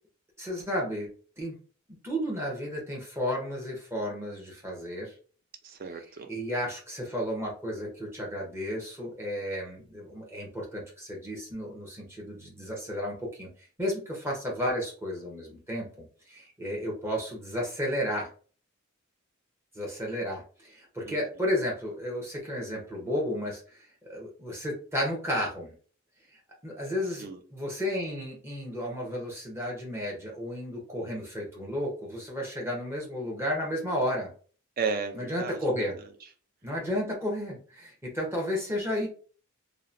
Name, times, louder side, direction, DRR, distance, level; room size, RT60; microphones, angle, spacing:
voice 1, 0.4-1.1 1.4-1.5 2.0-5.1 6.3-13.5 13.8-18.3 19.7-25.7 26.6-34.3 35.2-36.0 36.6-39.1, equal, 15° right, 0.8 m, -33 dB
voice 2, 5.6-6.3 21.0-21.2 27.2-27.4 34.8-36.0, right 5 dB, 45° right, 0.4 m, -34 dB
2.8 x 2.1 x 2.5 m
head